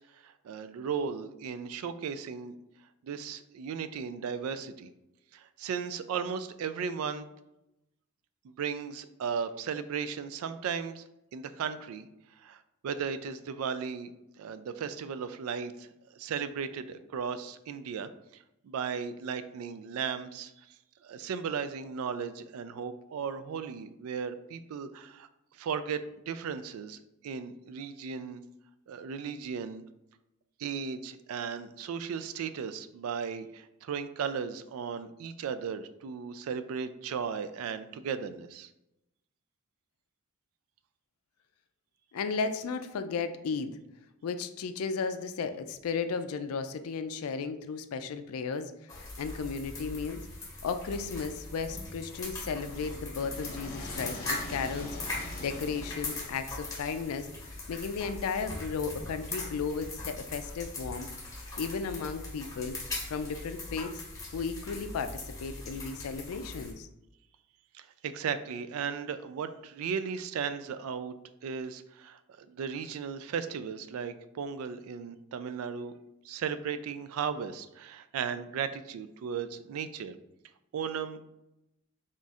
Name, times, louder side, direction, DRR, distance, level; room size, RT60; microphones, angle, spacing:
voice 1, 0.1-2.5 3.0-4.9 5.3-7.3 8.4-11.0 11.3-12.1 12.4-20.7 21.0-25.3 25.6-27.0 27.2-28.4 28.9-29.8 30.6-38.7 67.7-71.1 71.4-75.9 76.2-80.2 80.7-81.3, right 6 dB, 80° right, 12 dB, 0.3 m, -36 dB
voice 2, 42.1-43.8 44.2-50.2 50.6-57.3 57.7-61.1 61.6-62.8 63.1-64.0 64.3-66.9, left 5 dB, 90° left, 10 dB, 0.4 m, -34 dB
sound 1, 48.9-66.7, left 2 dB, 15° left, 0.8 m, -40 dB
sound 2, 52.4-56.8, left 1 dB, 45° left, 0.8 m, -44 dB
3.7 x 2.4 x 4.1 m, 0.89 s
head